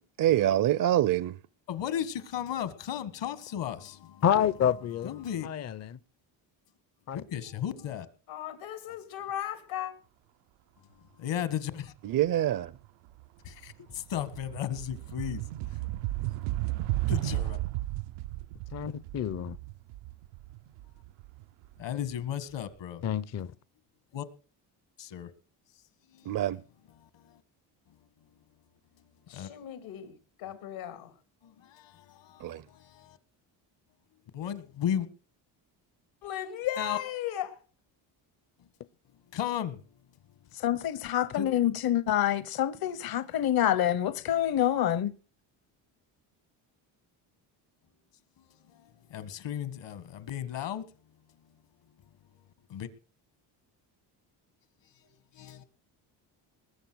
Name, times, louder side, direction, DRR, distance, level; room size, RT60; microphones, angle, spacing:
voice 1, 0.2-1.3 12.0-12.7 26.3-26.6 32.4-32.6, right 12 dB, 45° right, 0.6 m, -25 dB
voice 2, 1.7-4.2 5.0-5.5 7.1-8.1 11.2-11.9 13.4-15.4 15.7-15.8 17.1-17.6 21.8-23.0 24.1-24.3 25.0-25.3 26.1-26.4 26.9-27.4 29.3-29.5 31.4-33.2 34.3-35.1 36.8-37.0 39.3-39.8 41.3-41.5 48.4-50.8 52.7-52.9 55.3-55.6, left 10 dB, 65° left, 1.7 m, -35 dB
voice 3, 4.2-6.0 7.1-7.2 18.7-19.6 23.0-23.5, left 9 dB, 35° left, 0.6 m, -29 dB
voice 4, 8.3-9.9 29.3-31.1 36.2-37.5, left 11 dB, 85° left, 2.9 m, -36 dB
sound 1, 12.6-12.9 13.2-22.1, right 17 dB, 90° right, 0.7 m, -34 dB
voice 5, 40.6-45.1, left 11 dB, 50° left, 1.0 m, -27 dB
20.5 x 7.5 x 6.2 m
cardioid pair, 95°, 46 cm